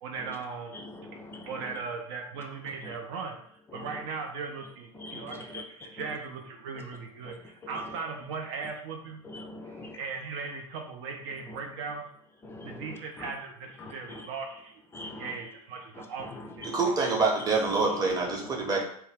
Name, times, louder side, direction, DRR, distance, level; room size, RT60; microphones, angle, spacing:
voice 1, 0.0-0.8 1.4-9.2 9.6-12.1 12.6-17.2, right 5 dB, 50° right, 3 dB, 0.5 m, -38 dB
voice 2, 0.7-1.5 5.0-5.6 9.2-10.0 12.4-12.8 13.2-13.3 13.8-14.2 14.9-15.3 16.6-16.8 18.4-18.7, left 2 dB, 15° left, 3 dB, 0.4 m, -42 dB
voice 3, 16.7-18.8, right 3 dB, 20° right, -1 dB, 0.8 m, -26 dB
2.6 x 2.2 x 3.3 m, 0.64 s
figure-of-eight pair, 85°, 19 cm